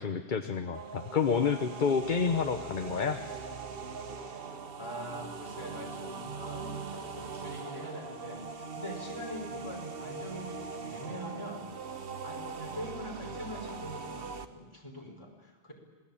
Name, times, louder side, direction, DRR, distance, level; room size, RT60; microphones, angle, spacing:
voice 1, 0.0-3.4, left 6 dB, 50° left, 8 dB, 1.1 m, -29 dB
sound 1, 0.7-14.5, right 5 dB, 65° right, 1.3 m, -41 dB
voice 2, 4.8-15.7, equal, 30° left, -1 dB, 5.3 m, -43 dB
26.5 x 19.0 x 8.7 m, 1.4 s
omnidirectional pair, 1.0 m